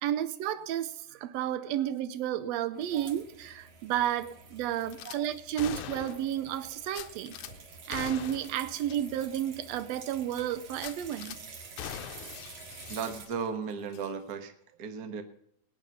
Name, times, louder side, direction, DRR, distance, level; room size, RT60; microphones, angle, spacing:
voice 1, 0.0-7.4 7.9-11.4, right 11 dB, 90° right, 1.5 m, -32 dB
sound 1, 2.7-13.3, right 4 dB, 50° right, 2.7 m, -49 dB
voice 2, 2.7-3.1 5.0-5.3 12.9-14.5 14.8-15.2, right 6 dB, 65° right, 0.9 m, -37 dB
Gunshot gunfire / Glass, 4.9-5.2 5.6-6.3 6.9-7.5 7.9-8.6 8.9-9.0 9.4-9.5 10.7-11.4 11.8-13.6 13.9-14.1, left 11 dB, 75° left, 1.8 m, -42 dB
18.5 x 9.1 x 5.3 m
omnidirectional pair, 3.9 m